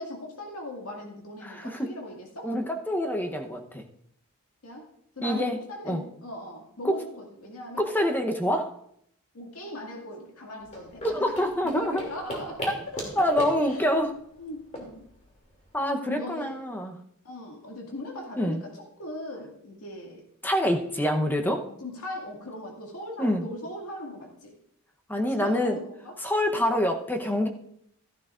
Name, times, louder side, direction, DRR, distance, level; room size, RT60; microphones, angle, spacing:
voice 1, 0.0-2.5 4.6-4.9 5.2-7.8 9.3-11.4 11.7-12.7 12.9-13.8 14.4-15.0 16.0-16.6 17.2-20.2 21.6-24.6 25.1-26.2 26.5-26.8, left 1 dB, 70° left, 0 dB, 2.1 m, -39 dB
voice 2, 1.4-1.9 2.4-3.8 5.2-5.6 5.9-6.0 6.8-6.9 7.8-8.8 11.0-12.0 12.6-12.7 13.1-14.1 15.7-17.0 18.4-18.6 20.4-21.6 23.2-23.4 25.1-25.8 26.2-27.5, equal, 10° left, 3 dB, 0.8 m, -26 dB
sound 1, 10.6-15.8, equal, 30° left, 2.7 m, -38 dB
13.5 x 11.5 x 2.5 m, 0.70 s
head